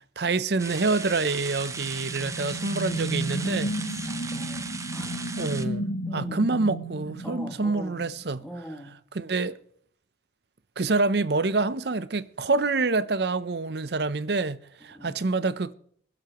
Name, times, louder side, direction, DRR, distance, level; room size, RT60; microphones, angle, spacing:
voice 1, 0.2-3.7 5.4-8.4 9.1-9.6 10.8-15.7, right 3 dB, 60° right, 0.6 m, -27 dB
sound 1, 0.6-5.6, right 4 dB, 15° right, 0.7 m, -37 dB
sound 2, 1.7-8.1, right 1 dB, 75° left, 3.0 m, -33 dB
voice 2, 3.4-4.7 4.9-5.5 6.0-6.4 7.2-8.1 8.4-9.0 14.8-15.2, equal, ahead, 2.8 m, -41 dB
26.0 x 12.0 x 3.0 m
head